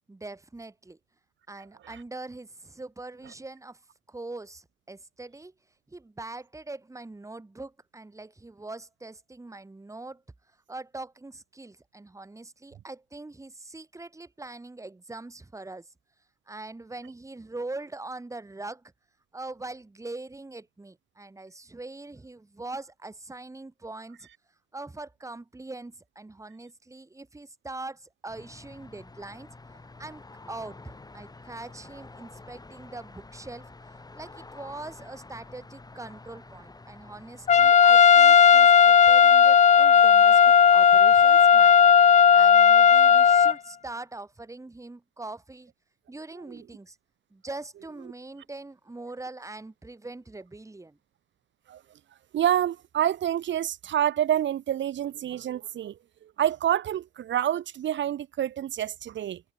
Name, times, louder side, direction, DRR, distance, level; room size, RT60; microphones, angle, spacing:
voice 1, 0.1-1.0 1.5-3.8 4.1-5.5 5.9-10.2 10.7-15.9 16.5-18.9 19.3-24.3 24.7-29.5 30.0-33.7 34.1-41.7 42.3-45.7 46.1-47.0 47.3-51.0, right 2 dB, 15° right, 3.2 m, -42 dB
sound 1, 28.3-37.7, left 3 dB, 20° left, 3.4 m, -48 dB
Trumpet, 37.5-43.5, left 8 dB, 35° left, 0.5 m, -15 dB
voice 2, 52.3-59.4, right 11 dB, 70° right, 2.4 m, -28 dB
cardioid pair, 90°, 20 cm